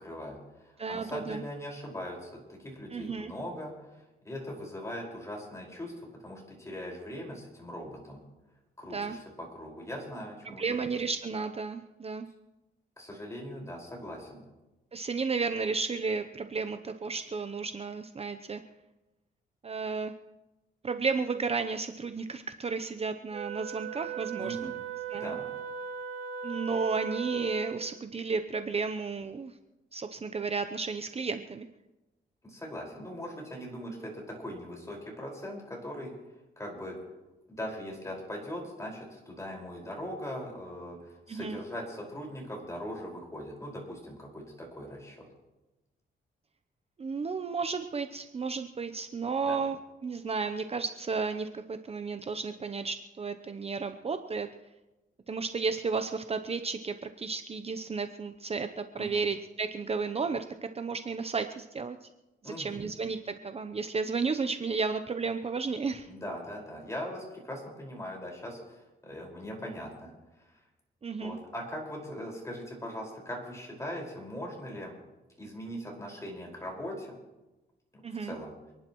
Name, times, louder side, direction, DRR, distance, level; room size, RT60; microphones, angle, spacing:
voice 1, 0.0-3.7 4.3-8.2 8.8-10.9 13.0-14.4 24.4-24.7 25.1-25.4 32.4-36.1 36.6-37.0 37.5-45.3 49.4-49.6 59.0-59.2 62.4-62.8 66.1-70.1 70.4-70.6 71.2-74.9 75.4-77.2 77.9-78.5, equal, 15° left, -2 dB, 5.1 m, -40 dB
voice 2, 0.8-1.4 2.9-3.3 8.9-9.2 10.4-12.3 14.9-18.6 19.6-20.1 20.8-24.7 25.1-25.3 26.4-29.5 29.9-31.7 41.3-41.6 47.0-49.8 50.0-54.5 55.3-62.1 62.4-66.1 71.0-71.4 78.0-78.3, right 4 dB, 35° right, 8 dB, 0.7 m, -33 dB
Wind instrument woodwind instrument, 23.3-27.9, right 7 dB, 55° right, 4.8 m, -38 dB
28.0 x 11.0 x 3.1 m, 1.0 s
cardioid pair, 95°, 18 cm